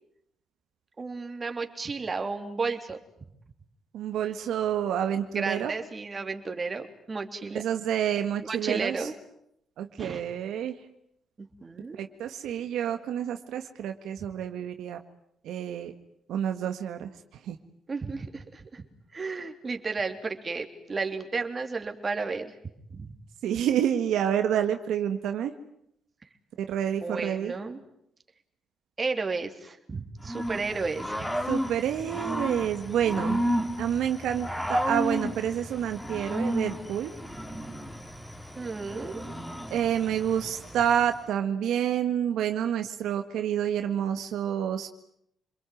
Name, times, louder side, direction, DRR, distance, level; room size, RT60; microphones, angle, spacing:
voice 1, 1.0-3.0 5.3-7.6 8.4-9.1 10.0-10.2 11.4-12.0 17.9-18.8 19.1-22.6 22.9-23.1 27.0-27.8 29.0-31.3 38.6-39.2, right 4 dB, 30° right, 6 dB, 3.4 m, -33 dB
voice 2, 3.9-5.7 7.5-9.1 9.8-10.8 11.9-15.0 15.4-15.9 16.3-17.1 17.4-17.6 23.4-25.5 26.6-27.5 31.5-33.4 33.8-37.1 39.7-44.9, right 9 dB, 80° right, 7 dB, 1.7 m, -28 dB
Growling / Cricket, 30.2-41.2, equal, 5° left, 3.6 m, -33 dB
27.5 x 22.0 x 9.4 m, 0.74 s
cardioid pair, 90°, 0 cm